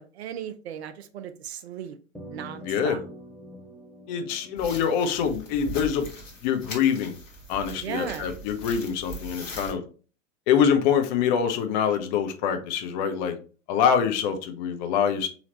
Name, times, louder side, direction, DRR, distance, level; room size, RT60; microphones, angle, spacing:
voice 1, 0.0-2.0 2.3-3.0 7.8-8.3, right 9 dB, 60° right, 0.5 m, -36 dB
sound 1, 2.1-6.8, equal, ahead, 1.0 m, -46 dB
voice 2, 2.6-3.0 4.1-6.1 6.4-7.2 7.5-9.8 10.5-13.4 13.7-15.3, left 7 dB, 35° left, 0.6 m, -25 dB
sound 2, 4.6-9.7, equal, 85° left, 1.0 m, -40 dB
3.9 x 2.8 x 2.8 m
figure-of-eight pair, 90°, 38 cm